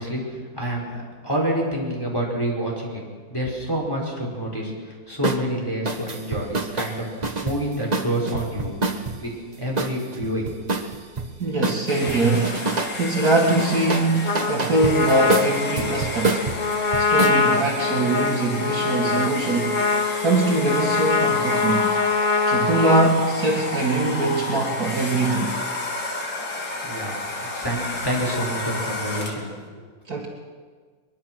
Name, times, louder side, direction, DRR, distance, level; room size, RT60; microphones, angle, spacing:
voice 1, 0.0-3.0 3.3-8.7 9.2-10.5 26.9-27.2 27.4-29.5, right 1 dB, 10° left, -3 dB, 5.2 m, -28 dB
sound 1, 5.2-5.4 5.9-9.2 9.8-11.3 11.6-13.0 13.2-17.4, right 3 dB, 25° right, 1.1 m, -27 dB
voice 2, 11.4-16.5 17.0-19.8 20.2-21.9 22.5-25.6 30.1-30.3, right 2 dB, 50° right, 0 dB, 2.4 m, -22 dB
Domestic sounds home sounds, 11.9-29.6, left 2 dB, 60° left, 3.0 m, -32 dB
Trumpet, 14.2-23.1, left 4 dB, 35° left, 0.8 m, -24 dB
23.0 x 22.0 x 6.3 m, 1.5 s
omnidirectional pair, 2.1 m